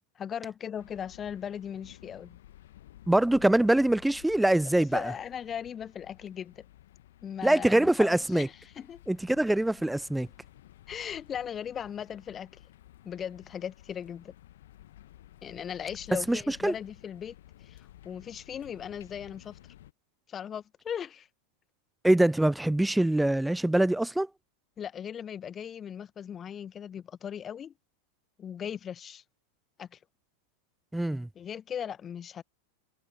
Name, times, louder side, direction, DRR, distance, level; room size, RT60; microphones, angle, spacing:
voice 1, 0.1-2.4 4.6-6.6 7.2-8.5 8.7-9.0 10.9-12.5 13.0-14.3 15.4-17.3 17.6-19.6 20.3-21.3 24.8-27.7 28.4-29.2 29.8-30.0 31.3-32.4, left 8 dB, 25° left, 1.5 m, -38 dB
sound 1, 0.8-19.9, left 13 dB, 55° left, 1.5 m, -54 dB
voice 2, 3.1-5.1 7.4-8.5 9.1-10.3 16.3-16.7 22.0-24.3 30.9-31.3, right 1 dB, 5° right, 0.4 m, -24 dB
figure-of-eight pair, 90°, 0 cm